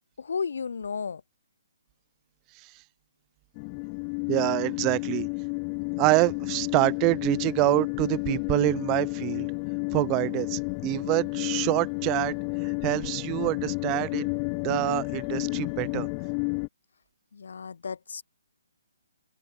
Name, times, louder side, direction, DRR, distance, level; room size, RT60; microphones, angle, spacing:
voice 1, 0.2-1.2 17.3-18.2, left 5 dB, 70° left, 0.9 m, -33 dB
sound 1, 3.6-16.7, left 40 dB or more, 25° left, 1.3 m, -31 dB
voice 2, 4.3-5.3 6.0-9.5 9.9-12.3 12.6-14.3 14.6-16.1, right 26 dB, 25° right, 1.1 m, -26 dB
open air
hypercardioid pair, 150°, 0 cm